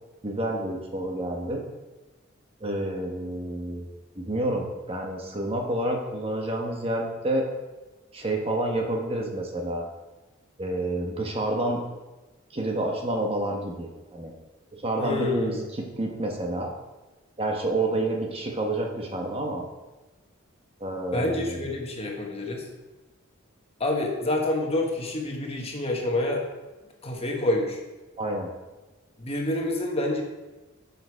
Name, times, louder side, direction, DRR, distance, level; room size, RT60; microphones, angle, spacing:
voice 1, 0.2-1.6 2.6-3.8 4.2-7.4 8.1-9.8 10.6-11.8 12.5-14.3 14.7-16.7 17.4-19.6 20.8-21.7 28.2-28.5, right 1 dB, 30° right, 1 dB, 1.2 m, -29 dB
voice 2, 15.0-15.6 21.1-22.6 23.8-26.4 27.0-27.8 29.2-30.2, left 1 dB, 30° left, 0 dB, 1.5 m, -27 dB
9.6 x 6.8 x 4.8 m, 1.1 s
head